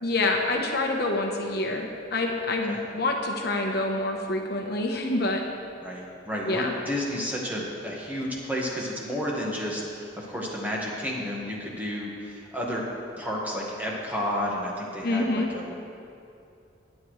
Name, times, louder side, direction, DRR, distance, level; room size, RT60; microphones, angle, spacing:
voice 1, 0.0-5.4 6.5-6.7 15.0-15.5, left 2 dB, 55° left, 1 dB, 1.0 m, -27 dB
voice 2, 5.8-12.8 13.2-15.7, equal, 10° right, -4 dB, 1.5 m, -31 dB
20.0 x 8.5 x 3.2 m, 2.5 s
head